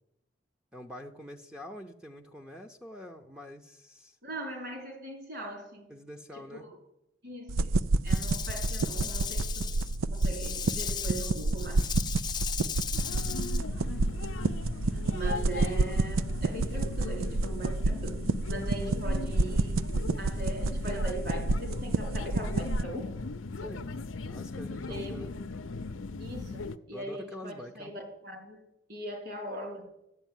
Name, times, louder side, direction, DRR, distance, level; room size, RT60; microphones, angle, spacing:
voice 1, 0.7-4.2 5.9-6.7 13.7-14.1 23.6-23.9 24.2-25.3 26.9-27.9, equal, 5° right, 1 dB, 0.8 m, -45 dB
voice 2, 4.2-5.9 6.3-6.8 7.2-9.8 10.1-11.9 14.9-23.2 24.9-25.2 26.2-29.9, right 1 dB, 55° right, 3 dB, 4.7 m, -40 dB
sound 1, 7.5-22.8, right 3 dB, 85° right, 0.5 m, -29 dB
Rattle / Rattle (instrument), 8.1-13.6, left 8 dB, 20° left, 0.5 m, -37 dB
sound 2, 12.9-26.8, left 3 dB, 75° left, 0.6 m, -38 dB
13.0 x 10.0 x 9.2 m, 0.85 s
head